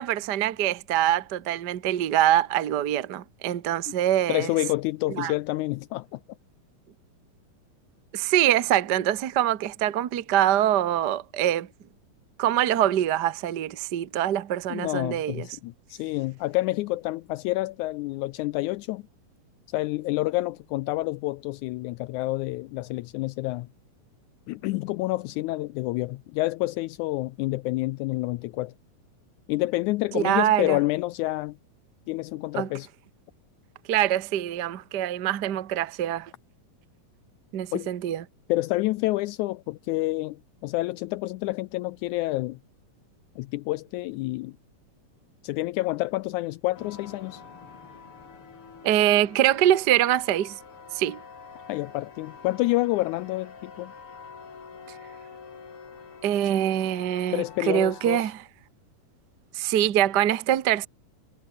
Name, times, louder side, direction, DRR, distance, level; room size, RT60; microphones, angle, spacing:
voice 1, 0.0-4.5 5.1-5.3 8.1-11.7 12.4-15.5 30.1-30.8 32.5-32.7 33.9-36.3 37.5-38.2 48.8-50.6 50.9-51.2 56.2-58.4 59.5-60.9, right 12 dB, 70° right, 0.9 m, -24 dB
voice 2, 4.3-6.2 14.7-19.0 19.7-23.7 24.5-28.7 29.5-31.6 32.1-32.9 37.7-37.9 38.5-42.6 43.4-44.5 45.4-47.4 51.7-53.9 57.3-58.2, left 19 dB, 85° left, 1.7 m, -28 dB
sound 1, 46.7-58.2, left 5 dB, 40° left, 3.7 m, -46 dB
omnidirectional pair, 3.9 m